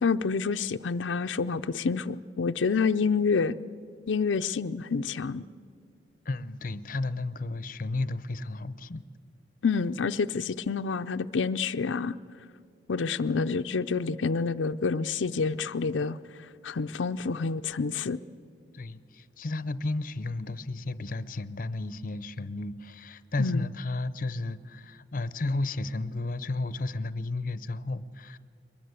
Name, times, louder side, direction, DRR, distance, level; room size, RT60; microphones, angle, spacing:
voice 1, 0.0-3.6 4.1-5.4 9.6-12.2 12.9-16.2 16.6-18.2 23.4-23.7, left 5 dB, 90° left, 9 dB, 0.5 m, -28 dB
voice 2, 6.2-9.0 18.7-28.4, left 2 dB, 45° left, 16 dB, 0.7 m, -33 dB
22.5 x 21.0 x 8.2 m, 2.3 s
head